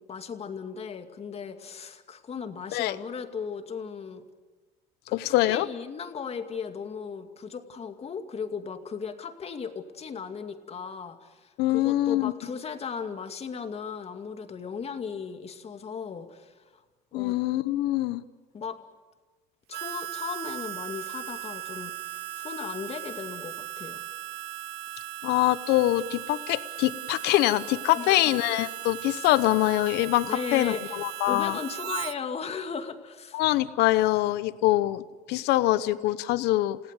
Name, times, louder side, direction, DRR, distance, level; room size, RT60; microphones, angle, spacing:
voice 1, 0.0-4.2 5.1-16.8 17.1-17.4 18.5-18.8 19.7-24.0 27.9-28.2 30.3-33.4, left 6 dB, 35° left, 7 dB, 2.4 m, -37 dB
voice 2, 5.1-5.7 11.6-12.3 17.1-18.2 25.2-31.6 33.3-36.8, left 16 dB, 75° left, 15 dB, 0.9 m, -24 dB
Harmonica, 19.7-32.2, right 14 dB, 70° right, 0.8 m, -38 dB
30.0 x 17.5 x 8.3 m, 1.3 s
supercardioid pair, 100°, 17 cm